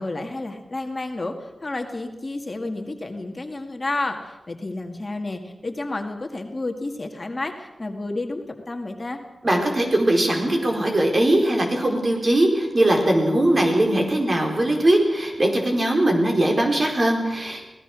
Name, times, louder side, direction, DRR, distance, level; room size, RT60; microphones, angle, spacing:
voice 1, 0.0-9.2, left 2 dB, 35° left, 4 dB, 2.0 m, -31 dB
voice 2, 9.4-17.7, right 1 dB, 40° right, 2 dB, 4.7 m, -20 dB
24.5 x 18.0 x 6.2 m, 1.1 s
wide cardioid pair, 90°, 0 cm